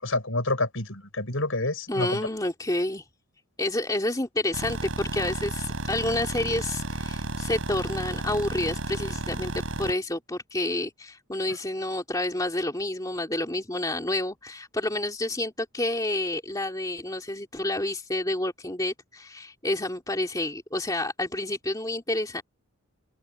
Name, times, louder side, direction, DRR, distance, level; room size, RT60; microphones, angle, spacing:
voice 1, 0.0-2.2, left 2 dB, 65° left, 6.8 m, -28 dB
voice 2, 1.9-3.0 3.6-22.4, left 1 dB, 15° left, 2.7 m, -29 dB
sound 1, 4.5-9.9, right 1 dB, 60° right, 7.1 m, -32 dB
open air
head